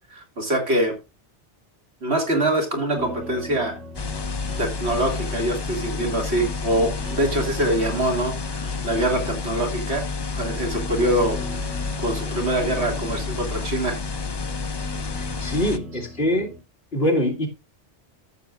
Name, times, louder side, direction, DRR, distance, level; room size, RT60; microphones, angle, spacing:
voice 1, 0.1-0.9 2.0-3.8 4.6-10.0 10.3-11.4 12.0-14.0, right 1 dB, 65° right, 2.7 m, -24 dB
sound 1, 2.9-16.6, equal, 85° right, 2.8 m, -41 dB
sound 2, 3.9-15.8, left 4 dB, 30° left, 0.5 m, -29 dB
voice 2, 15.1-16.5 16.9-17.5, left 1 dB, 55° left, 2.4 m, -23 dB
13.5 x 6.9 x 2.5 m
omnidirectional pair, 1.2 m